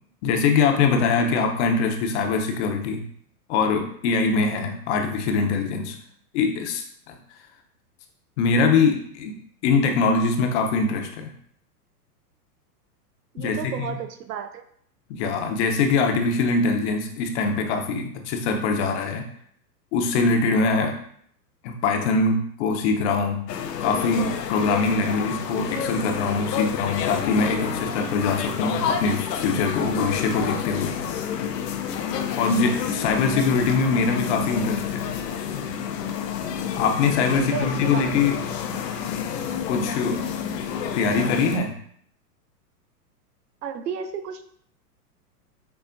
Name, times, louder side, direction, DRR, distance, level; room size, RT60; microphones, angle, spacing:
voice 1, 0.2-3.0 3.5-6.0 6.3-7.1 8.4-9.3 9.6-11.3 13.4-13.9 15.1-19.2 19.9-20.9 21.6-23.4 23.8-31.0 31.4-31.5 32.0-32.1 32.4-35.1 36.7-38.4 39.7-40.2 40.9-41.7, left 4 dB, 45° left, 4 dB, 0.7 m, -23 dB
voice 2, 13.3-14.6 37.3-38.3 43.6-44.4, right 7 dB, 75° right, 8 dB, 0.7 m, -33 dB
sound 1, 23.5-41.6, left 8 dB, 80° left, 0.7 m, -29 dB
6.8 x 2.4 x 2.5 m, 0.64 s
hypercardioid pair, 110°, 48 cm